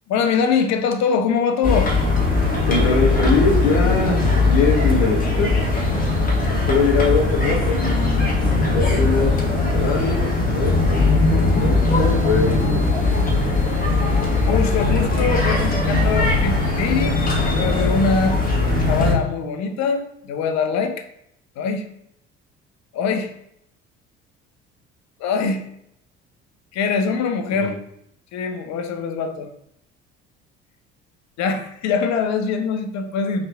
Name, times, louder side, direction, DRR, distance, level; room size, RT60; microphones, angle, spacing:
voice 1, 0.1-2.0 4.2-4.5 14.5-18.4 18.8-21.1 21.6-21.8 22.9-23.3 25.2-25.6 26.7-27.8 28.3-29.5 31.4-33.5, left 5 dB, 50° left, 7 dB, 0.7 m, -23 dB
sound 1, 1.6-19.1, left 3 dB, 25° left, 1.4 m, -19 dB
voice 2, 2.7-5.5 6.7-7.8 8.7-9.4 9.7-12.9 27.5-27.8, left 4 dB, 70° left, -1 dB, 1.2 m, -22 dB
5.6 x 3.1 x 2.4 m, 0.75 s
figure-of-eight pair, 55°, 36 cm